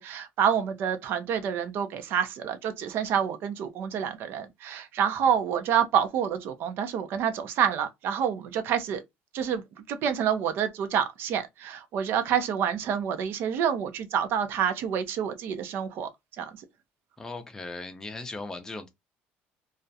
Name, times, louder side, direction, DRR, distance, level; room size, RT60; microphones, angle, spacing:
voice 1, 0.0-9.0 9.3-9.6 9.9-16.1 16.4-16.5, right 8 dB, 60° right, 0.5 m, -28 dB
voice 2, 17.2-18.9, left 2 dB, 15° left, 0.5 m, -38 dB
2.4 x 2.1 x 2.6 m
cardioid pair, 130°, 4 cm